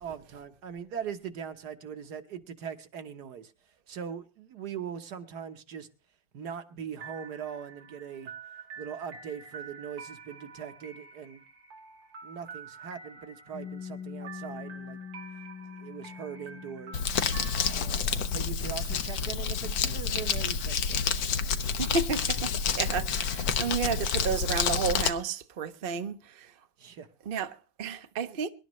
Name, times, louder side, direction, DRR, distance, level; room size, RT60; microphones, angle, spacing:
voice 1, 0.0-3.5 3.9-5.9 6.3-8.3 8.8-11.4 12.2-15.0 15.8-17.0 17.7-18.0 18.3-21.3 26.8-27.1, right 8 dB, 60° right, 1.6 m, -40 dB
sound 1, 7.0-17.7, right 6 dB, 90° right, 3.0 m, -47 dB
Piano, 13.5-20.8, left 7 dB, 65° left, 1.7 m, -46 dB
Crumpling crinkling, 16.9-25.1, left 6 dB, 85° left, 1.7 m, -29 dB
voice 2, 21.8-26.5 27.3-28.5, right 5 dB, 45° right, 0.7 m, -32 dB
25.0 x 11.5 x 3.1 m
omnidirectional pair, 2.0 m